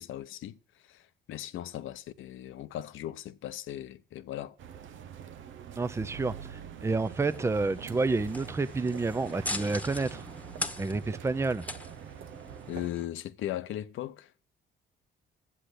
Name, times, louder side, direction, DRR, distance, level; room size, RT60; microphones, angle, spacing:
voice 1, 0.0-4.6 12.7-14.3, left 12 dB, 80° left, 0.8 m, -38 dB
sound 1, 4.6-12.9, right 9 dB, 75° right, 0.7 m, -44 dB
voice 2, 5.7-10.2 10.8-11.7, right 3 dB, 15° right, 0.6 m, -29 dB
sound 2, 7.0-13.1, left 1 dB, 5° left, 1.3 m, -41 dB
8.3 x 7.6 x 8.1 m
cardioid pair, 90°, 20 cm